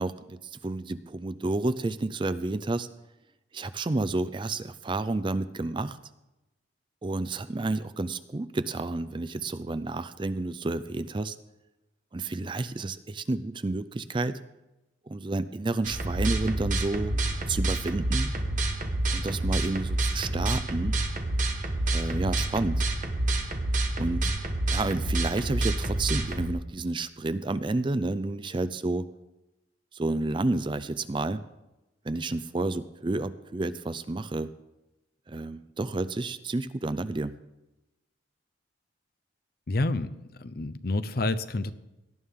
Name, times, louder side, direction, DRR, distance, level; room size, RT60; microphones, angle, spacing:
voice 1, 0.0-2.9 3.5-6.0 7.0-11.4 12.1-14.4 15.1-18.3 19.1-21.0 21.9-22.8 24.0-24.3 24.7-29.1 29.9-31.4 32.0-34.5 35.3-37.3, right 2 dB, 25° right, 13 dB, 0.4 m, -30 dB
sound 1, 15.8-26.5, right 2 dB, 40° right, 1.3 m, -28 dB
voice 2, 39.7-40.1 40.4-41.7, left 2 dB, 50° left, 13 dB, 0.6 m, -28 dB
18.0 x 11.0 x 3.6 m, 0.97 s
head